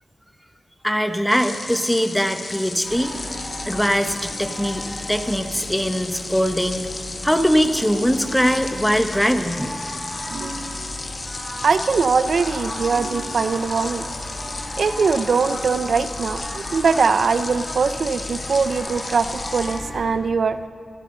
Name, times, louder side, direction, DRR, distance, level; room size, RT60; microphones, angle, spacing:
voice 1, 0.8-3.2 3.7-6.9 7.2-9.8, equal, 5° left, 7 dB, 0.9 m, -21 dB
sound 1, 1.2-19.9, left 3 dB, 45° left, 1.0 m, -34 dB
sound 2, 2.8-20.1, left 1 dB, 30° left, 3.3 m, -35 dB
sound 3, 7.6-8.8 10.2-11.4 12.9-13.9 15.3-16.3, right 4 dB, 90° right, 1.5 m, -40 dB
voice 2, 11.6-14.0 14.8-20.6, right 5 dB, 75° right, 11 dB, 0.5 m, -21 dB
25.0 x 12.5 x 3.8 m, 2.3 s
wide cardioid pair, 120°, 0 cm